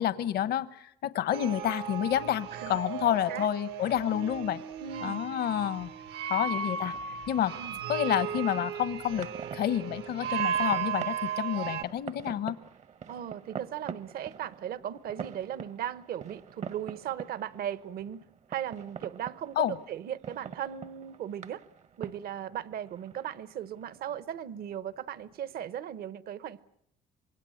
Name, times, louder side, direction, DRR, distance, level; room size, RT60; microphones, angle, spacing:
voice 1, 0.0-4.6 5.0-5.9 6.3-6.9 7.3-7.5 7.9-12.6 19.6-19.7, left 11 dB, 70° left, 1.1 m, -29 dB
sound 1, 1.3-11.8, right 8 dB, 80° right, 1.5 m, -35 dB
voice 2, 4.8-5.2 7.5-7.7 13.1-18.2 18.5-21.6 22.0-26.6, right 10 dB, 65° right, 1.1 m, -37 dB
sound 2, 6.4-25.7, right 7 dB, 45° right, 0.9 m, -46 dB
26.0 x 22.0 x 7.9 m
cardioid pair, 110°, 17 cm